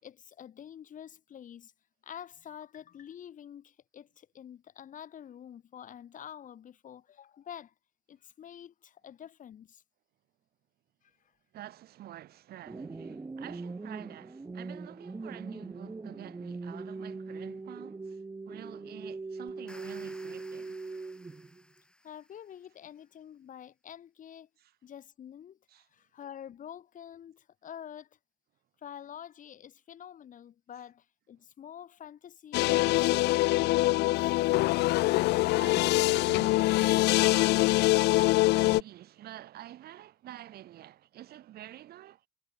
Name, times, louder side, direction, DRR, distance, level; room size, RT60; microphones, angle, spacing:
voice 1, 0.0-1.7 2.0-7.7 8.1-9.8 11.0-11.2 20.9-21.0 22.0-24.5 24.8-25.6 25.9-28.1 28.8-34.3, left 9 dB, 50° left, 3.1 m, -47 dB
voice 2, 11.5-20.8 24.6-24.7 25.7-25.9 32.9-33.0 35.0-42.2, right 13 dB, 65° right, 5.6 m, -48 dB
sound 1, 12.6-21.6, right 3 dB, 20° right, 2.9 m, -41 dB
sound 2, 19.5-22.7, left 1 dB, 5° left, 4.9 m, -56 dB
sound 3, 32.5-38.8, left 19 dB, 80° left, 0.7 m, -24 dB
cardioid pair, 110°, 17 cm